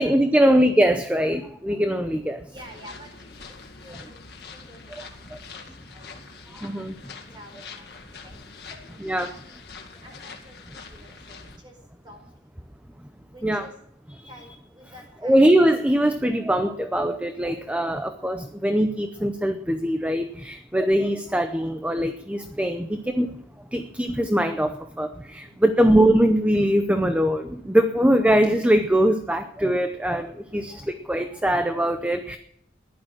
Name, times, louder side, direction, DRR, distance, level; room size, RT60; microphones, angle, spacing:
voice 1, 0.0-2.5 5.3-5.4 6.5-7.0 9.0-9.4 13.4-13.7 14.1-14.3 15.2-23.3 23.6-32.4, right 1 dB, 5° right, 8 dB, 0.6 m, -22 dB
voice 2, 2.5-6.8 7.3-8.4 8.7-9.6 10.0-11.8 12.0-12.2 13.3-13.7 14.3-15.5 25.4-25.8, equal, 25° right, 2 dB, 4.7 m, -50 dB
sound 1, 2.6-11.6, left 4 dB, 60° left, 2.1 m, -44 dB
15.0 x 11.5 x 6.1 m, 0.72 s
head